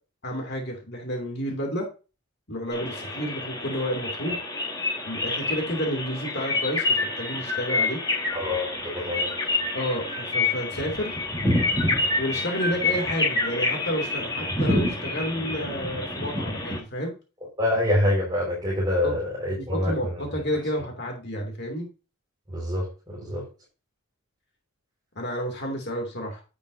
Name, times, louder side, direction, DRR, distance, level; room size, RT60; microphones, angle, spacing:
voice 1, 0.2-1.9 2.5-4.4 5.1-8.0 9.7-11.1 12.2-17.1 19.0-19.2 19.5-21.9 25.2-26.4, equal, 50° left, 2 dB, 2.7 m, -30 dB
sound 1, 2.7-16.8, left 2 dB, 15° left, 3.8 m, -27 dB
voice 2, 8.3-8.8 9.0-9.3 17.6-20.2 22.5-23.5, left 1 dB, 20° right, -6 dB, 5.1 m, -26 dB
10.5 x 8.3 x 2.7 m, 0.31 s
head